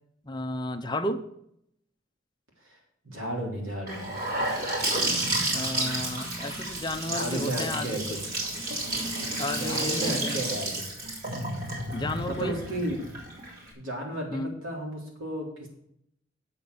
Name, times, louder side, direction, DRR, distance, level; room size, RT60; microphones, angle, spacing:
voice 1, 0.2-1.2 5.5-8.0 9.4-10.4 11.9-12.6 14.3-14.5, left 1 dB, 20° left, 8 dB, 0.6 m, -32 dB
voice 2, 3.0-4.3 7.0-8.5 9.5-11.0 12.3-13.0 13.7-15.7, right 1 dB, 80° right, -1 dB, 3.5 m, -34 dB
Gurgling / Sink (filling or washing) / Bathtub (filling or washing), 3.9-13.7, right 1 dB, 45° right, 3.6 m, -31 dB
8.1 x 7.2 x 6.8 m, 0.74 s
head